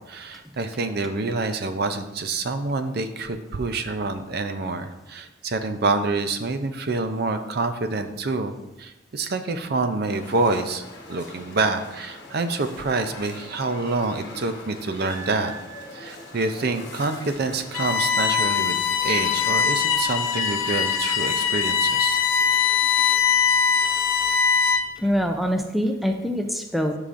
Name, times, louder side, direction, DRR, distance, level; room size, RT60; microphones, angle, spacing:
voice 1, 0.1-8.5 8.8-15.5 15.9-22.2, right 3 dB, 50° right, 8 dB, 0.5 m, -27 dB
sound 1, 10.1-18.0, left 2 dB, 55° left, 1.2 m, -43 dB
sound 2, 15.1-16.7 20.3-22.4, right 7 dB, 20° right, 1.9 m, -42 dB
Bowed string instrument, 17.7-25.0, left 7 dB, 85° left, 0.7 m, -22 dB
voice 2, 25.0-26.9, equal, ahead, 3 dB, 0.5 m, -24 dB
12.5 x 4.9 x 2.6 m, 1.0 s
head